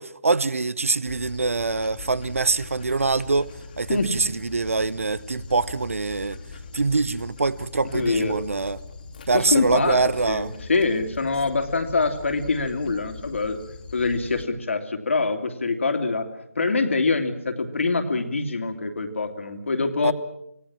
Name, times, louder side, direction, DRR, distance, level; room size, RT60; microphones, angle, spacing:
voice 1, 0.0-3.5 3.8-6.4 6.7-8.8 9.3-10.5 20.0-20.1, right 3 dB, 60° right, 1.0 m, -24 dB
Dog, 1.1-14.4, left 4 dB, 35° left, 2.5 m, -41 dB
voice 2, 7.9-8.4 9.3-13.6 13.9-16.3 16.5-20.1, left 3 dB, 55° left, 2.8 m, -24 dB
25.5 x 19.0 x 7.4 m
figure-of-eight pair, 155°, 8 cm